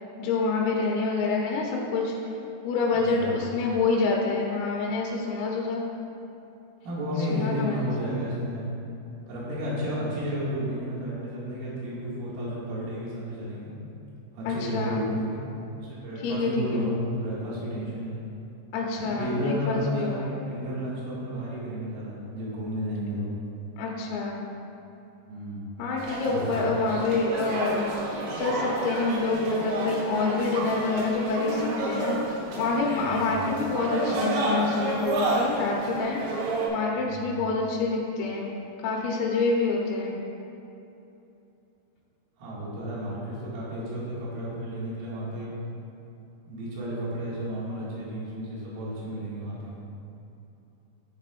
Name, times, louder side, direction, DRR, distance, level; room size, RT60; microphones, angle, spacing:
voice 1, 0.2-2.1 2.6-5.8 7.3-7.9 14.5-15.1 16.2-16.9 18.7-20.4 23.8-24.4 25.8-36.2 36.7-38.5 38.8-40.2, left 3 dB, 85° left, -2 dB, 3.5 m, -27 dB
voice 2, 2.9-3.4 6.8-8.7 9.3-13.7 14.3-15.4 15.8-18.3 19.0-23.3 25.3-25.7 26.3-26.6 33.0-33.4 37.0-37.4 42.4-45.5 46.4-49.8, equal, 90° right, -8 dB, 4.8 m, -32 dB
sound 1, 26.0-36.7, right 2 dB, 70° right, 2.8 m, -30 dB
11.0 x 9.2 x 2.5 m, 2.8 s
omnidirectional pair, 5.8 m